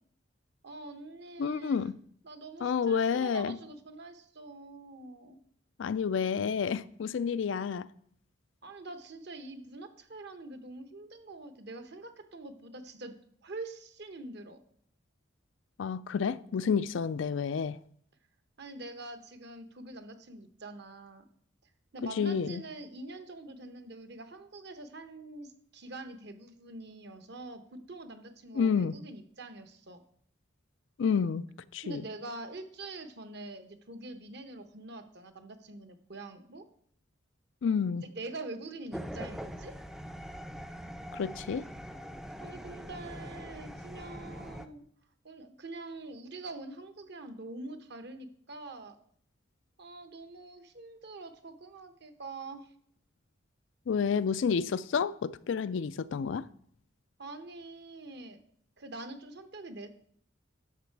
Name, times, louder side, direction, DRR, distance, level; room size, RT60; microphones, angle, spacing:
voice 1, 0.6-1.9 2.2-5.4 8.6-13.2 13.4-14.6 18.6-21.2 21.9-30.0 31.8-36.6 38.0-39.7 42.4-44.8 45.2-49.0 49.8-52.7 57.2-58.4 58.8-59.9, right 2 dB, 55° right, 1.0 m, -45 dB
voice 2, 1.4-1.9 2.6-3.6 5.8-7.8 15.8-17.8 22.2-22.6 28.5-28.9 31.0-31.4 31.7-32.0 37.6-38.0 41.1-41.6 53.9-56.4, left 6 dB, 70° left, 0.4 m, -29 dB
sound 1, 38.9-44.7, equal, ahead, 0.4 m, -43 dB
11.0 x 6.6 x 4.6 m
head